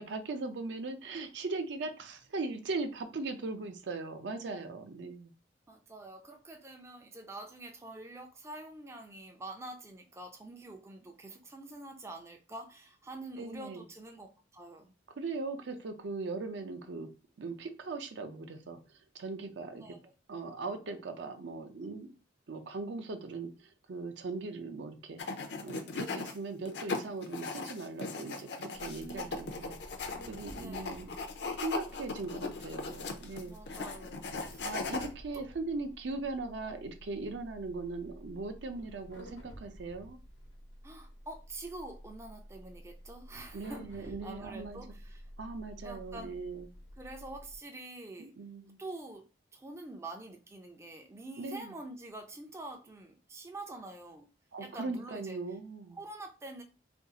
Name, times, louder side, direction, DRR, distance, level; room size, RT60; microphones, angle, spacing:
voice 1, 0.0-5.3 13.4-13.8 15.2-17.1 17.4-18.8 19.1-19.9 20.3-22.1 22.5-25.2 25.6-29.8 30.3-31.1 31.6-33.8 34.6-40.2 43.5-44.8 45.4-46.7 48.2-48.8 51.4-51.7 54.5-56.0, right 3 dB, 70° right, 0.5 m, -39 dB
voice 2, 5.7-14.3 14.5-14.9 19.7-20.0 28.8-29.4 30.5-31.0 33.4-34.7 35.3-35.4 40.8-45.3 45.8-46.4 47.0-48.3 48.8-49.2 49.5-54.3 54.6-55.4 55.9-56.6, right 2 dB, 15° right, 0.3 m, -46 dB
sound 1, 25.2-26.3 26.6-35.1, left 3 dB, 60° left, 0.5 m, -38 dB
sound 2, 28.7-47.6, equal, 85° left, 0.9 m, -51 dB
2.5 x 2.3 x 3.8 m
head